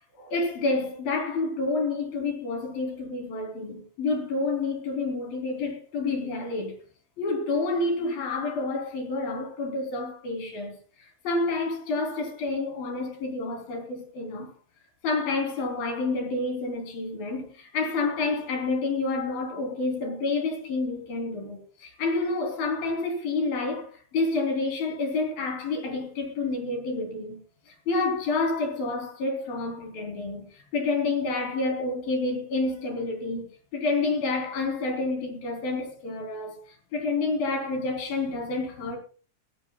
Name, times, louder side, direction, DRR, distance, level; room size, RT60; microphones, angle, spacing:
voice 1, 0.2-6.7 7.2-14.5 15.0-27.4 27.7-33.5 33.7-36.6 36.9-39.0, left 3 dB, 90° left, 5.3 m, -29 dB
18.0 x 16.0 x 2.3 m
omnidirectional pair, 4.0 m